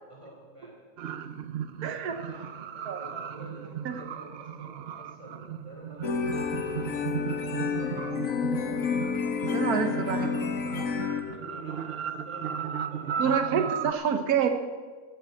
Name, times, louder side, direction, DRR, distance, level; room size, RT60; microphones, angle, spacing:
voice 1, 0.1-0.8 1.6-8.7 9.5-13.6, equal, 20° right, -2 dB, 4.2 m, -49 dB
sound 1, 1.0-13.9, right 8 dB, 55° right, 0.7 m, -36 dB
voice 2, 1.8-2.1 2.9-3.0 3.8-4.0 9.5-10.3 13.2-14.5, right 7 dB, 90° right, 6 dB, 1.4 m, -27 dB
sound 2, 6.0-11.2, left 6 dB, 65° left, 1.5 m, -30 dB
14.0 x 9.0 x 8.2 m, 1.5 s
omnidirectional pair, 1.6 m